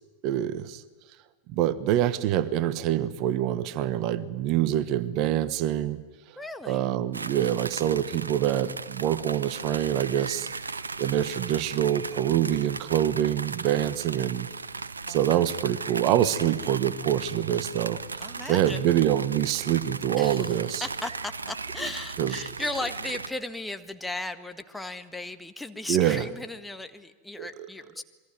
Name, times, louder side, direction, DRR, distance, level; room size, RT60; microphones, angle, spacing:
voice 1, 0.2-0.8 1.5-6.0 6.6-10.5 11.0-14.5 15.1-20.8 22.2-22.4 25.9-26.3 27.4-27.5, right 11 dB, 40° right, 15 dB, 1.2 m, -25 dB
voice 2, 6.4-6.9 13.8-14.0 15.1-15.2 18.2-18.8 20.2-28.0, left 2 dB, 5° left, 8 dB, 1.6 m, -36 dB
sound 1, 7.1-23.3, right 4 dB, 75° right, 0.9 m, -37 dB
27.5 x 22.5 x 9.5 m, 1.3 s
figure-of-eight pair, 90°, 0 cm